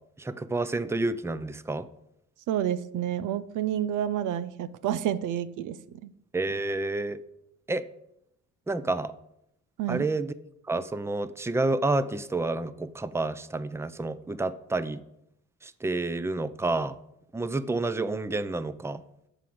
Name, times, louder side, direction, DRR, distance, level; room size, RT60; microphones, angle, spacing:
voice 1, 0.2-1.9 6.3-7.2 7.7-7.8 8.7-9.1 9.9-10.3 10.7-15.0 15.6-17.0 17.3-19.0, right 2 dB, 10° right, 14 dB, 0.6 m, -29 dB
voice 2, 2.5-6.1 9.8-10.1, right 10 dB, 85° right, 14 dB, 0.7 m, -29 dB
13.0 x 5.0 x 7.8 m, 0.79 s
cardioid pair, 90°, 30 cm